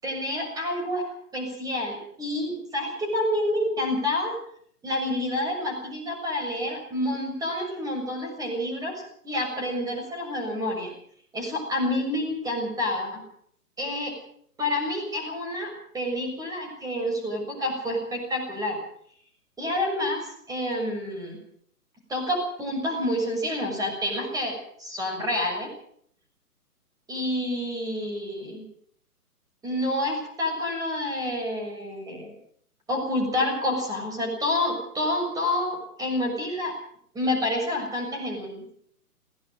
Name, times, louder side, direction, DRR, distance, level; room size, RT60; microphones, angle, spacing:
voice 1, 0.0-4.4 4.8-10.9 11.3-13.2 13.8-14.2 14.6-18.8 19.6-21.4 22.1-25.7 27.1-28.6 29.6-32.3 32.9-36.7 37.1-38.6, left 1 dB, 10° right, 2 dB, 6.8 m, -28 dB
21.5 x 18.5 x 6.5 m, 0.63 s
figure-of-eight pair, 140°, 46 cm